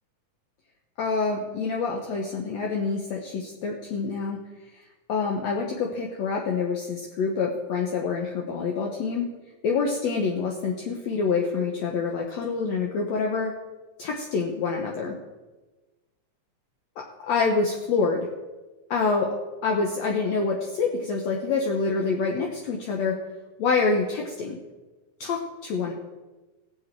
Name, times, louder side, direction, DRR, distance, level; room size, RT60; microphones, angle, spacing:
voice 1, 1.0-4.4 5.1-9.3 9.6-13.5 14.0-15.2 17.0-18.3 18.9-19.3 19.6-23.2 23.6-24.6 25.2-25.9, left 4 dB, 65° left, 1 dB, 2.1 m, -26 dB
20.5 x 7.3 x 4.5 m, 1.2 s
omnidirectional pair, 3.5 m